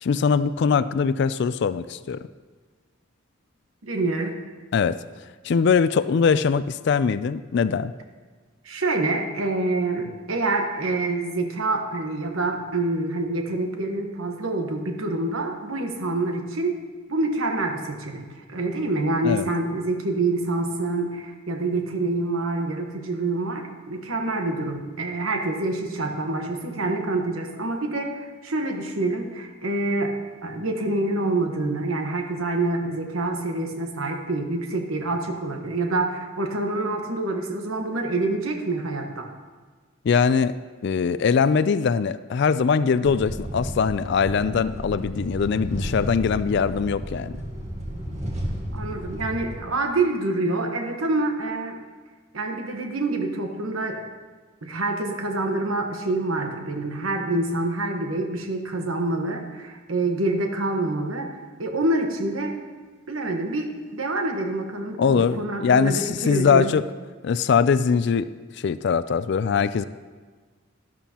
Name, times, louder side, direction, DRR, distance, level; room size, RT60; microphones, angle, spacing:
voice 1, 0.0-2.3 4.7-5.0 5.4-7.9 19.2-19.5 40.0-40.5 40.8-47.3 65.0-66.8 67.2-68.3 68.6-69.9, left 6 dB, 55° left, 14 dB, 0.3 m, -22 dB
voice 2, 3.8-4.4 8.6-16.7 17.1-30.1 30.4-39.3 48.7-51.8 52.3-54.0 54.6-61.3 61.6-62.5 63.1-66.7, right 2 dB, 80° right, 4 dB, 1.2 m, -26 dB
sound 1, 43.0-49.6, equal, 35° right, 1.6 m, -32 dB
12.5 x 12.0 x 2.9 m, 1.4 s
head